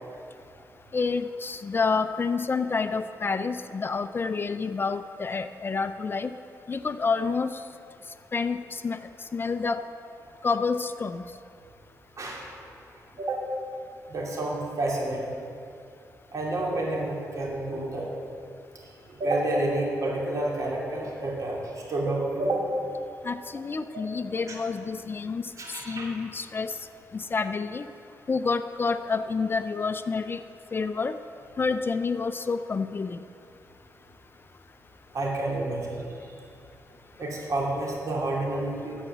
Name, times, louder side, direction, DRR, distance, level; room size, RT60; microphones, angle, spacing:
voice 1, 0.9-6.3 6.7-7.5 8.3-9.0 9.3-9.8 10.4-11.2 23.3-25.4 25.9-26.7 27.1-27.8 28.3-30.4 30.7-31.1 31.6-33.2, left 4 dB, 35° left, 11 dB, 0.4 m, -28 dB
voice 2, 12.2-12.5 13.2-13.4 14.1-15.4 16.3-18.1 19.2-21.6 21.9-22.7 23.9-24.0 25.6-26.1 35.1-36.0 37.2-39.0, right 2 dB, 55° right, -2 dB, 2.6 m, -29 dB
13.5 x 5.0 x 7.9 m, 2.5 s
cardioid pair, 95°, 7 cm